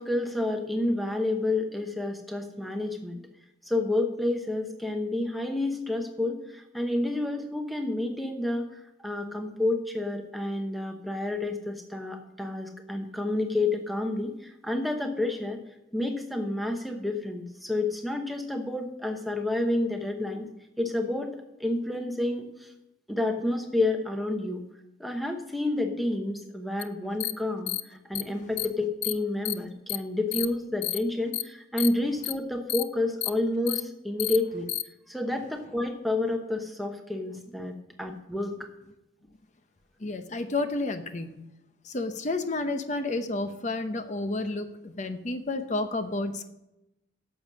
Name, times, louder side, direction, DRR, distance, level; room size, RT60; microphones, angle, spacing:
voice 1, 0.0-3.2 3.6-8.7 9.0-15.6 15.9-20.5 20.8-22.7 23.1-24.6 25.0-34.7 35.1-38.6, left 2 dB, ahead, 3 dB, 1.0 m, -29 dB
sound 1, 26.8-26.9 27.2-27.3 27.7-27.8 28.2-28.3 28.6-28.7 29.0-29.1 29.5-29.6 29.9-30.0 30.3-30.5 30.8-31.0 31.3-31.4 31.8-31.9 32.2-32.3 32.7-32.8 33.2-33.3 33.7-33.8 34.2-34.4 34.7-34.8, left 15 dB, 60° left, 0.4 m, -29 dB
voice 2, 40.0-41.4 41.8-46.5, left 2 dB, 40° left, 9 dB, 0.7 m, -31 dB
11.0 x 7.0 x 6.2 m, 0.92 s
head